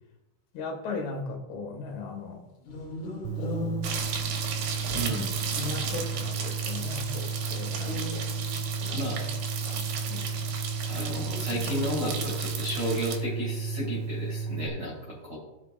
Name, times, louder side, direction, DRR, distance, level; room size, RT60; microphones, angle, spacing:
voice 1, 0.5-2.4 3.4-3.7 4.9-8.3 8.8-9.2 9.6-10.4, left 3 dB, 75° left, 2 dB, 4.3 m, -38 dB
sound 1, 2.6-4.9 7.7-9.0 10.8-12.7, left 1 dB, 55° left, 2.3 m, -38 dB
sound 2, 3.3-14.7, right 4 dB, 85° right, 3.2 m, -33 dB
sound 3, 3.8-13.2, right 6 dB, 70° right, 2.8 m, -35 dB
voice 2, 4.9-5.3 8.9-9.4 10.9-15.4, equal, 30° right, -4 dB, 2.5 m, -33 dB
16.5 x 6.6 x 2.6 m, 0.98 s
omnidirectional pair, 5.6 m